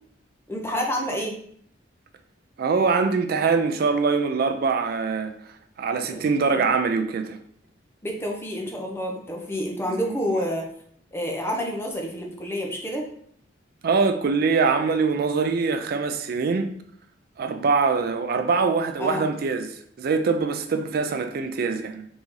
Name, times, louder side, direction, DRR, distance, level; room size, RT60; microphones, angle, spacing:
voice 1, 0.5-1.4 6.0-6.3 6.5-6.6 8.0-10.7 11.1-13.1 19.0-19.3, equal, 15° left, 0.6 m, -29 dB
voice 2, 2.6-5.3 5.8-7.4 13.8-16.8 17.4-22.1, right 4 dB, 50° right, 0.4 m, -23 dB
3.6 x 2.7 x 3.1 m
head